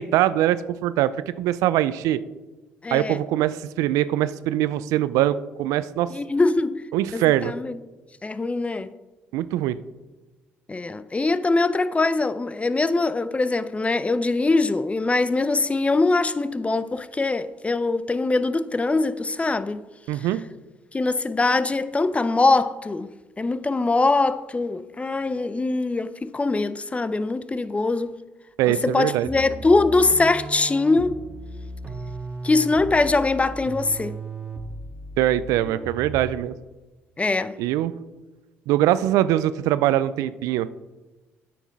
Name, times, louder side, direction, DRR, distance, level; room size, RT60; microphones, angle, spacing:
voice 1, 0.0-2.2 2.9-6.1 6.9-7.5 9.3-9.8 20.1-20.4 28.6-29.3 35.2-36.5 37.6-37.9 38.7-40.7, right 13 dB, 75° right, 0.4 m, -22 dB
voice 2, 2.8-3.2 6.1-6.8 7.1-7.8 8.2-8.9 10.7-19.8 20.1-20.3 20.9-28.2 28.7-31.2 32.4-34.2 37.2-37.6, left 3 dB, 20° left, 0.5 m, -22 dB
sound 1, 29.2-36.4, right 2 dB, 20° right, 1.7 m, -36 dB
9.2 x 5.9 x 4.7 m
hypercardioid pair, 60°, 6 cm